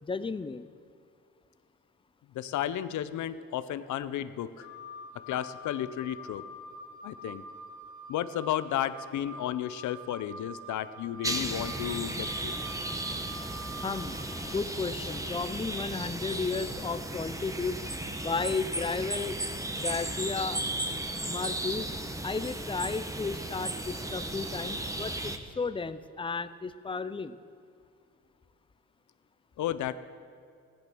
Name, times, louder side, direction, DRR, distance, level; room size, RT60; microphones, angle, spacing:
voice 1, 0.0-0.7 13.8-17.8 18.2-19.4 19.8-20.6 21.3-21.9 22.2-27.4, left 4 dB, 15° left, 13 dB, 0.6 m, -33 dB
voice 2, 2.3-4.7 5.3-6.4 7.0-7.4 8.1-12.5 29.6-29.9, left 11 dB, 75° left, 13 dB, 0.7 m, -33 dB
Wind instrument woodwind instrument, 4.6-14.2, right 1 dB, 90° right, 3.3 m, -46 dB
sound 1, 11.2-25.4, right 1 dB, 10° right, 1.0 m, -35 dB
15.5 x 10.5 x 6.2 m, 2.4 s
cardioid pair, 90°, 30 cm